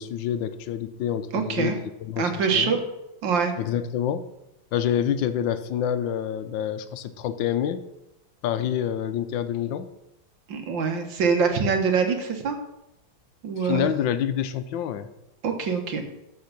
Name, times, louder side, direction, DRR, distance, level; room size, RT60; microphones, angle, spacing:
voice 1, 0.0-1.7 2.0-2.8 3.6-4.3 4.7-7.8 8.4-9.9 13.6-15.1, left 9 dB, 85° left, 12 dB, 1.4 m, -27 dB
voice 2, 1.3-1.8 2.2-2.8 3.2-3.5 10.5-12.6 13.4-13.9 15.4-16.0, right 5 dB, 80° right, 5 dB, 2.0 m, -24 dB
13.5 x 4.7 x 5.9 m, 0.89 s
omnidirectional pair, 2.0 m